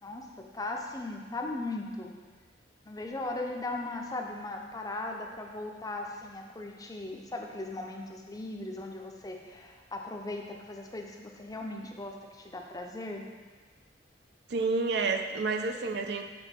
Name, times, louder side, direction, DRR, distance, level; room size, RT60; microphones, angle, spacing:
voice 1, 0.0-2.1 2.9-13.2, left 2 dB, 20° left, 1 dB, 0.5 m, -38 dB
voice 2, 14.5-16.2, right 4 dB, 65° right, 6 dB, 0.5 m, -29 dB
8.0 x 3.5 x 4.4 m, 1.4 s
head